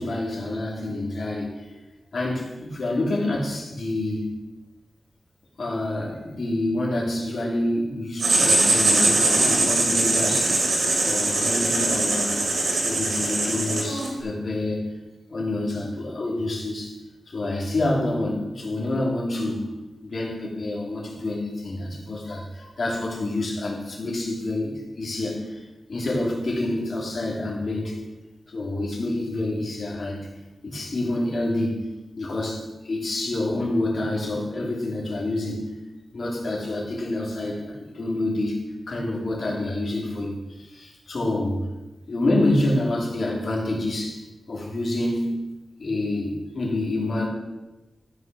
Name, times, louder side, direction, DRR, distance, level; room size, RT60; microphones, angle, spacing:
voice 1, 0.0-1.5 2.1-4.3 5.6-10.6 11.0-12.4 12.8-14.9 15.3-16.9 17.3-19.7 20.0-25.6 25.9-28.0 28.5-30.3 30.6-35.7 36.1-38.6 38.9-41.6 42.1-44.2 44.5-45.4 45.8-47.3, left 1 dB, 55° left, -2 dB, 3.0 m, -27 dB
Writing, 8.2-14.2, right 2 dB, 65° right, 3.3 m, -22 dB
14.0 x 6.3 x 6.2 m, 1.1 s
wide cardioid pair, 160°, 0 cm